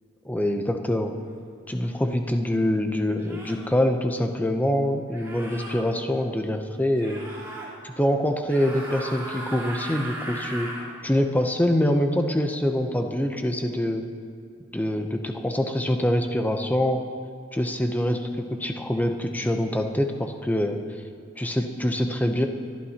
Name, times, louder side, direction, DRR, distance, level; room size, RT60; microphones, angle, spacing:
voice 1, 0.2-1.1 1.7-7.2 7.8-10.7 11.0-14.0 14.7-17.0 17.5-20.8 21.4-22.5, left 1 dB, 10° left, 5 dB, 0.6 m, -25 dB
sound 1, 1.8-2.0 3.2-3.7 5.1-5.8 7.0-7.7 8.4-10.9, right 1 dB, 15° right, 2.1 m, -37 dB
23.5 x 12.5 x 2.9 m, 2.3 s
head